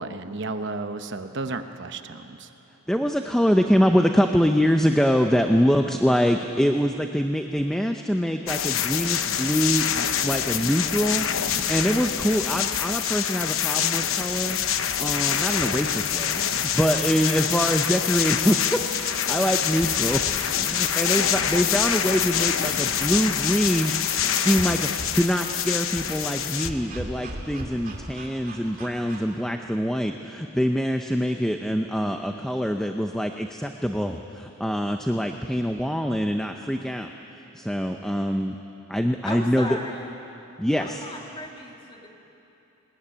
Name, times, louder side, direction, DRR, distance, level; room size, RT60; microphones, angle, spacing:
voice 1, 0.0-2.5, right 3 dB, 55° right, 8 dB, 0.9 m, -33 dB
voice 2, 2.9-18.8 19.2-20.2 20.6-37.1 37.5-38.5 38.9-39.8 40.6-41.0, equal, 5° left, 4 dB, 0.6 m, -24 dB
sound 1, 8.5-26.7, left 9 dB, 70° left, 0.9 m, -26 dB
sound 2, 11.4-29.4, right 2 dB, 40° right, 2.5 m, -42 dB
voice 3, 39.2-40.0 40.8-42.1, left 1 dB, 25° left, 0 dB, 2.6 m, -36 dB
20.5 x 19.5 x 10.0 m, 2.9 s
head